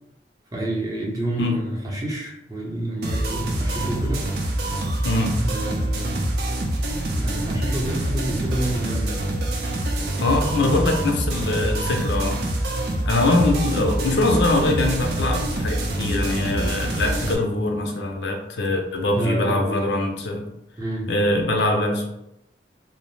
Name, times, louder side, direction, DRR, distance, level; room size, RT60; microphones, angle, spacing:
voice 1, 0.5-4.7 5.4-6.3 7.2-9.2 19.1-19.9 20.8-21.1, right 1 dB, 20° right, -4 dB, 0.6 m, -28 dB
sound 1, 3.0-17.3, right 1 dB, 65° right, 0.5 m, -26 dB
voice 2, 5.0-5.3 10.2-12.4 13.0-20.4 21.1-22.1, left 2 dB, 75° left, 2 dB, 0.5 m, -22 dB
2.7 x 2.0 x 3.1 m, 0.85 s
head